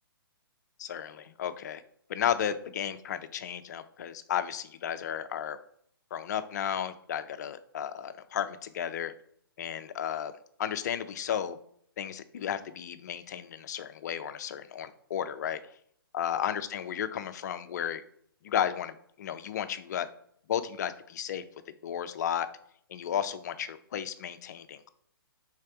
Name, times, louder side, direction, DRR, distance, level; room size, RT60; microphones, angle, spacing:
voice 1, 0.8-1.8 2.1-5.6 6.1-9.1 9.6-10.3 10.6-11.6 12.0-15.6 16.1-18.0 18.4-20.1 20.5-21.4 21.8-22.5 22.9-24.9, left 9 dB, 45° left, 11 dB, 0.4 m, -33 dB
3.4 x 3.2 x 4.7 m, 0.66 s
figure-of-eight pair, 135°, 12 cm